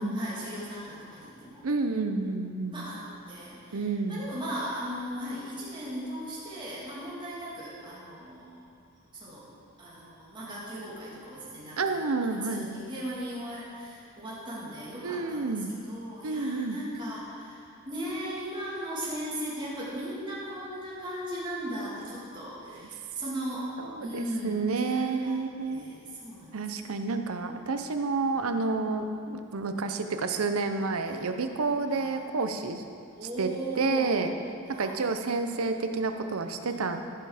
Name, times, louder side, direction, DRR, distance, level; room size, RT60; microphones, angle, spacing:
voice 1, 0.0-1.6 2.7-8.7 9.1-9.4 9.8-23.7 24.0-25.3 25.7-26.9 28.2-28.7 31.0-31.3 31.9-32.1 33.1-34.3 34.7-35.1 36.6-37.0, right 1 dB, 20° right, -8 dB, 2.8 m, -38 dB
voice 2, 1.6-2.9 3.7-4.2 11.8-12.7 15.0-15.7 16.2-16.8 22.8-22.9 23.8-25.8 26.5-32.8 33.4-33.5 33.8-34.3 34.8-37.0, right 3 dB, 85° right, 7 dB, 0.7 m, -29 dB
15.0 x 5.8 x 5.0 m, 2.4 s
head